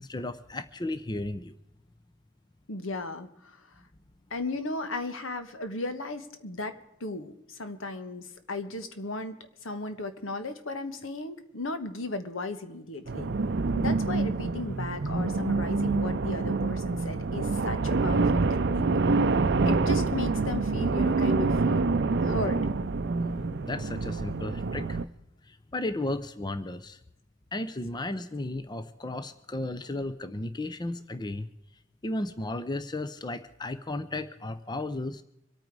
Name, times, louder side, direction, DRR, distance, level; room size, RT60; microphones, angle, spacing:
voice 1, 0.0-1.6 23.6-25.0 25.4-27.0 27.5-31.5 32.0-35.2, left 2 dB, 20° left, 12 dB, 0.6 m, -34 dB
voice 2, 2.7-3.6 4.3-9.4 9.6-13.3 13.8-18.9 19.6-22.6, left 2 dB, 80° left, 9 dB, 1.4 m, -36 dB
sound 1, 13.1-25.0, right 3 dB, 55° right, 0.5 m, -26 dB
25.5 x 9.1 x 4.7 m, 0.82 s
head